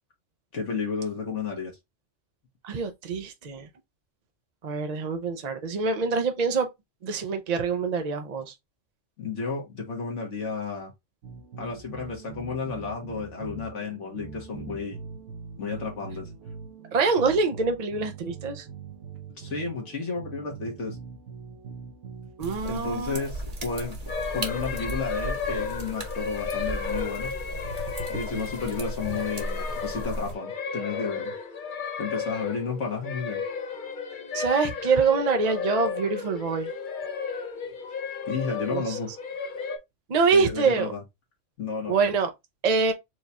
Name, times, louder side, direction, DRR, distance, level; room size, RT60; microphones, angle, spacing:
voice 1, 0.5-1.7 9.2-10.9 11.6-15.0 15.6-16.3 19.4-21.0 22.6-24.0 24.3-27.3 28.1-31.3 32.0-33.4 38.3-39.1 40.3-41.0 41.6-42.0, left 5 dB, 75° left, 1.5 m, -32 dB
voice 2, 2.6-3.7 4.6-6.7 7.0-8.5 16.9-18.6 22.4-23.2 34.3-36.7 38.7-39.0 40.1-40.9 41.9-42.3 42.6-42.9, right 4 dB, 50° right, 0.5 m, -25 dB
sound 1, 11.2-22.6, right 5 dB, 80° right, 1.1 m, -42 dB
sound 2, 22.4-30.3, right 1 dB, 35° right, 1.0 m, -36 dB
sound 3, 24.1-39.8, left 5 dB, 45° left, 0.8 m, -34 dB
4.7 x 2.3 x 4.0 m
omnidirectional pair, 1.3 m